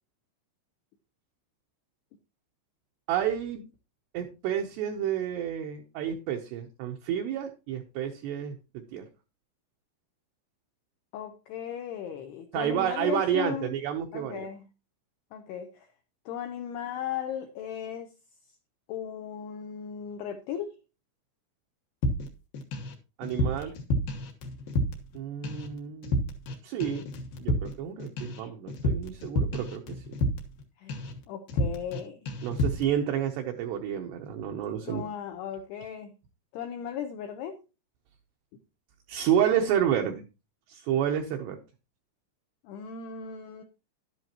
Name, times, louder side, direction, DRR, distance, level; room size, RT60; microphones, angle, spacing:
voice 1, 3.1-3.6 4.1-9.0 12.5-14.5 23.2-23.7 25.1-26.2 26.6-27.1 27.4-30.0 32.4-35.0 39.1-40.2 40.7-41.6, right 9 dB, 80° right, 3 dB, 2.5 m, -30 dB
voice 2, 11.1-13.8 14.1-14.7 15.3-15.9 16.3-18.1 18.9-20.7 30.8-32.4 34.9-36.1 36.5-37.6 42.6-43.6, left 8 dB, 85° left, 6 dB, 2.3 m, -37 dB
sound 1, 22.0-22.9 23.2-25.2 25.4-25.7 26.0-26.5 26.8-30.6 30.9-31.2 31.5-32.0 32.3-32.9, left 1 dB, 65° left, 2.4 m, -30 dB
11.5 x 11.0 x 2.9 m, 0.30 s
omnidirectional pair, 5.8 m